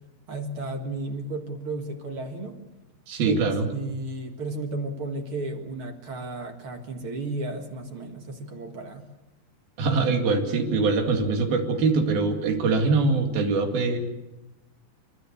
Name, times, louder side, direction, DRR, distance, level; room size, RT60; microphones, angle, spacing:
voice 1, 0.3-2.6 3.2-3.4 3.7-9.1, right 2 dB, 45° right, 4 dB, 2.1 m, -33 dB
voice 2, 3.1-3.7 9.8-14.0, right 4 dB, 75° right, 4 dB, 4.1 m, -23 dB
30.0 x 13.0 x 8.4 m, 1.0 s
omnidirectional pair, 4.3 m